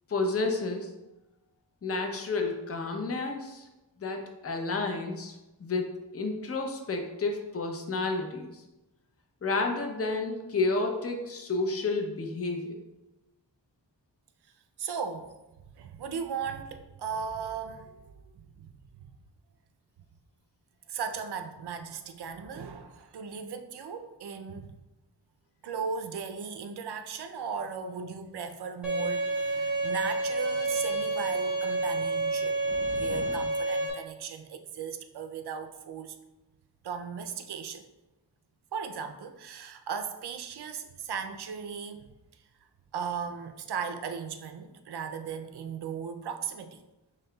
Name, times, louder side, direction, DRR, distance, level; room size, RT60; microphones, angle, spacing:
voice 1, 0.1-0.9 1.8-3.7 4.0-8.6 9.4-12.8, left 3 dB, 35° left, 3 dB, 0.6 m, -31 dB
voice 2, 14.8-15.4 15.8-19.1 20.9-24.8 25.6-36.2 36.8-37.9 38.7-42.1 42.9-46.8, right 6 dB, 60° right, 7 dB, 0.5 m, -37 dB
Bowed string instrument, 28.8-33.9, right 2 dB, ahead, 0.9 m, -29 dB
sound 1, 29.3-30.8 31.1-31.4 31.7-33.5, left 1 dB, 70° left, 0.9 m, -47 dB
5.4 x 3.4 x 2.2 m, 1.0 s
wide cardioid pair, 80°, 44 cm